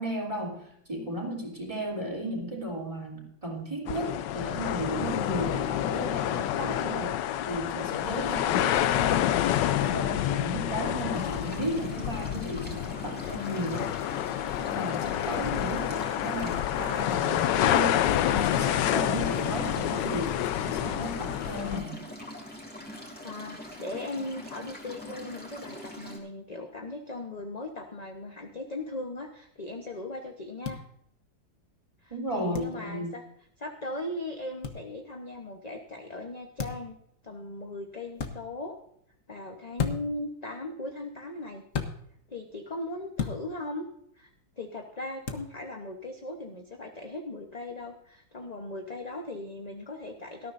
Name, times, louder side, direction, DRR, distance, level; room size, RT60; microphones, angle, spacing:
voice 1, 0.0-9.3 9.7-13.9 14.6-22.0 32.1-33.1, right 1 dB, 15° right, 0 dB, 3.2 m, -34 dB
sound 1, 3.9-21.8, left 12 dB, 75° left, 1.2 m, -28 dB
sound 2, 11.1-26.2, left 1 dB, 5° left, 2.6 m, -43 dB
voice 2, 23.2-30.8 32.0-33.2 33.6-36.9 37.2-38.8 39.3-41.6 42.3-43.9 44.2-44.3 44.6-50.5, left 2 dB, 30° left, 2 dB, 0.9 m, -38 dB
sound 3, 30.6-30.8 32.5-32.7 34.6-34.8 36.6-36.9 38.1-38.3 39.8-40.2 41.7-41.9 43.2-43.4 45.2-45.5, left 6 dB, 50° left, 1.4 m, -32 dB
18.5 x 13.5 x 2.6 m, 0.70 s
omnidirectional pair, 2.0 m